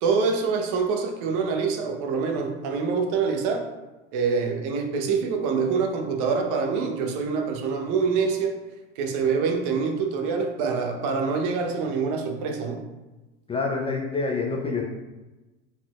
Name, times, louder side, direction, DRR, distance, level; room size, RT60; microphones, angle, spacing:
voice 1, 0.0-3.7 4.1-8.5 9.0-12.8, right 5 dB, 55° right, 3 dB, 0.9 m, -25 dB
voice 2, 13.5-14.8, left 4 dB, 15° left, 0 dB, 0.4 m, -27 dB
4.3 x 4.2 x 2.3 m, 1.1 s
hypercardioid pair, 95°, 38 cm